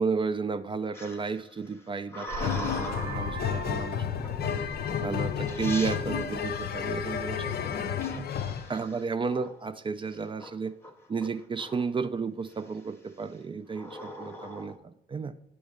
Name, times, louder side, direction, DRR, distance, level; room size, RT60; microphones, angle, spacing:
voice 1, 0.0-4.0 4.4-4.6 5.0-7.8 8.1-8.3 8.7-10.7 11.1-15.3, right 5 dB, 25° right, 12 dB, 0.3 m, -33 dB
sound 1, 0.9-3.4 4.2-4.6 5.2-5.3 5.5-6.0 8.0-9.7 10.1-10.5 10.8-12.0 12.5-12.9 13.7-14.8, left 1 dB, 10° left, 0.8 m, -41 dB
Vehicle horn car horn honking, 2.3-7.3, right 3 dB, 85° right, 1.0 m, -41 dB
sound 2, 2.4-8.7, left 8 dB, 55° left, 0.5 m, -31 dB
8.1 x 3.1 x 5.0 m, 0.76 s
cardioid pair, 90°, 20 cm